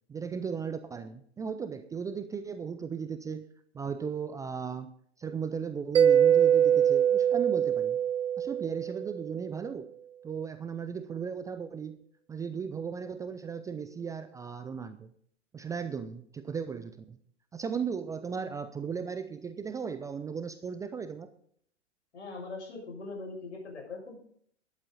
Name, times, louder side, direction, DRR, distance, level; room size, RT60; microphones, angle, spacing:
voice 1, 0.1-3.5 3.7-8.0 8.4-9.9 10.2-12.0 12.3-15.1 15.5-17.2 17.5-21.3, right 6 dB, 10° right, 11 dB, 0.5 m, -36 dB
Mallet percussion, 5.9-9.4, right 9 dB, 90° right, 0.6 m, -23 dB
voice 2, 22.1-24.1, left 3 dB, 75° left, 0 dB, 6.8 m, -41 dB
13.0 x 11.5 x 4.0 m, 0.62 s
figure-of-eight pair, 105°, 35 cm